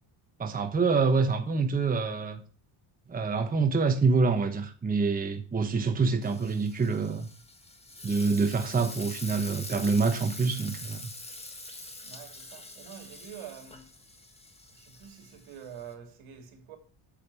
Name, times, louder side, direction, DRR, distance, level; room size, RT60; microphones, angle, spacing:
voice 1, 0.4-2.4 3.1-7.3 8.0-11.1, right 4 dB, 15° right, 1.1 m, -26 dB
Frying (food), 6.2-15.9, left 2 dB, 10° left, 1.6 m, -45 dB
voice 2, 12.0-13.9 14.7-16.8, right 8 dB, 80° right, 3.0 m, -46 dB
8.7 x 7.6 x 4.9 m
cardioid pair, 140°, 48 cm